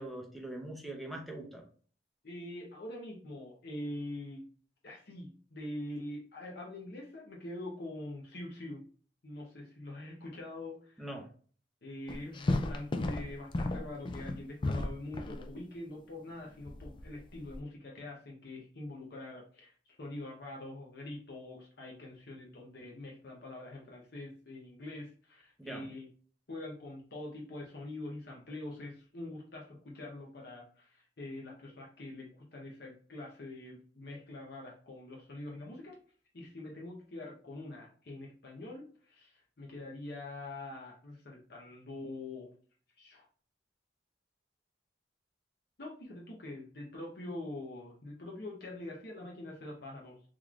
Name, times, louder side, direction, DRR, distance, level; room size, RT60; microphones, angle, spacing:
voice 1, 0.0-1.6 11.0-11.3 25.6-25.9, right 1 dB, ahead, 0 dB, 0.7 m, -42 dB
voice 2, 2.2-4.5 4.8-8.8 9.2-11.1 11.8-26.1 26.5-36.0 36.3-42.5 43.0-43.3 45.8-50.2, left 1 dB, 60° left, -2 dB, 0.8 m, -44 dB
sound 1, 12.1-15.5 16.7-17.6, left 2 dB, 25° left, 0.3 m, -33 dB
3.8 x 3.1 x 2.4 m, 0.43 s
head